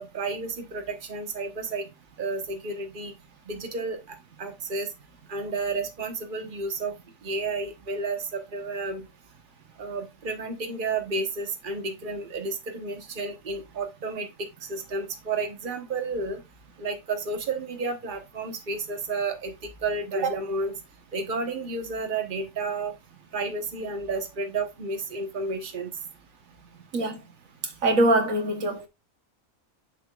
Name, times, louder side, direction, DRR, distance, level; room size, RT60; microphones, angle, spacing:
voice 1, 0.0-1.9 2.2-3.1 3.5-4.9 5.3-6.9 7.2-9.0 9.8-16.4 16.8-20.8 21.1-22.9 23.3-25.9, right 3 dB, 40° right, 1.4 m, -31 dB
voice 2, 27.8-28.9, right 1 dB, 75° right, 1.6 m, -23 dB
7.5 x 7.1 x 2.4 m
omnidirectional pair, 1.4 m